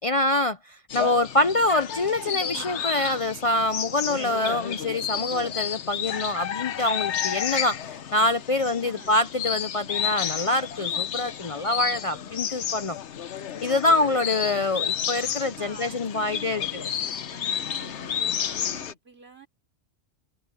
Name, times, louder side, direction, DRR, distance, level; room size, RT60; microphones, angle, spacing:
voice 1, 0.0-13.0 13.6-16.8, left 2 dB, 40° left, 0.5 m, -25 dB
sound 1, 0.9-18.9, left 9 dB, 85° left, 1.2 m, -31 dB
voice 2, 8.6-9.2 15.3-19.5, right 4 dB, 65° right, 3.5 m, -48 dB
omnidirectional pair, 1.1 m